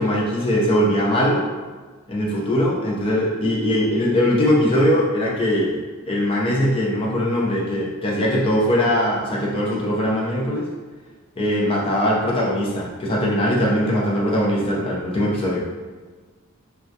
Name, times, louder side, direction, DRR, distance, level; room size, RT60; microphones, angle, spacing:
voice 1, 0.0-1.4 2.1-10.7 11.4-15.7, equal, 25° left, -4 dB, 0.4 m, -21 dB
2.2 x 2.1 x 2.6 m, 1.4 s
head